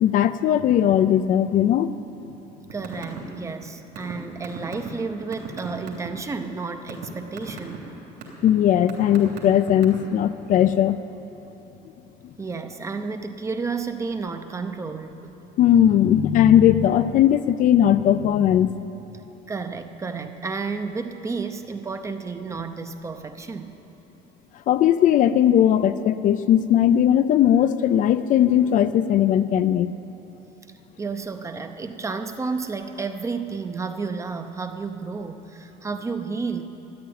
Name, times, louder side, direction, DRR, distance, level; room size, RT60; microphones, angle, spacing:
voice 1, 0.0-1.9 8.4-11.0 15.6-18.7 24.7-29.9, left 10 dB, 45° left, 12 dB, 0.5 m, -18 dB
voice 2, 2.7-7.8 12.4-15.3 19.5-23.8 31.0-36.6, right 4 dB, 15° right, 8 dB, 0.6 m, -31 dB
sound 1, 2.7-3.2 3.5-6.1 6.6-7.1 7.4-7.8 8.2-8.5 8.9-10.2, right 7 dB, 70° right, 3.3 m, -36 dB
14.0 x 10.5 x 9.4 m, 3.0 s
cardioid pair, 165°, 18 cm